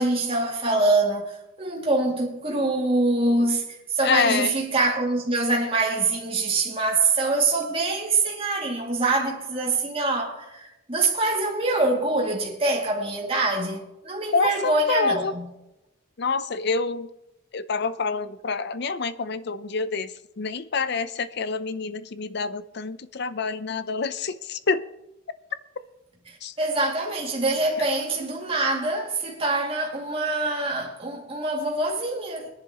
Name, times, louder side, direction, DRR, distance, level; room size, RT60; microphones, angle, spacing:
voice 1, 0.0-15.5 26.3-32.5, right 2 dB, 30° right, 2.4 m, -25 dB
voice 2, 4.0-4.5 14.3-15.3 16.2-17.1 17.5-20.1 20.4-24.8 26.4-26.5, left 4 dB, 55° left, 0.6 m, -27 dB
22.0 x 10.5 x 3.0 m
head